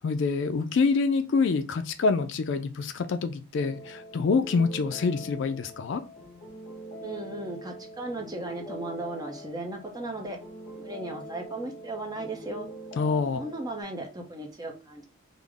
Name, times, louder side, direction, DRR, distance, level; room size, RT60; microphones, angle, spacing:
voice 1, 0.0-6.0 13.0-13.4, left 4 dB, 55° left, 0.3 m, -26 dB
sound 1, 3.6-13.8, equal, 35° left, 1.4 m, -43 dB
voice 2, 7.0-10.4 10.8-12.7 13.3-15.1, right 2 dB, 20° right, 0.6 m, -36 dB
3.7 x 2.0 x 3.4 m
head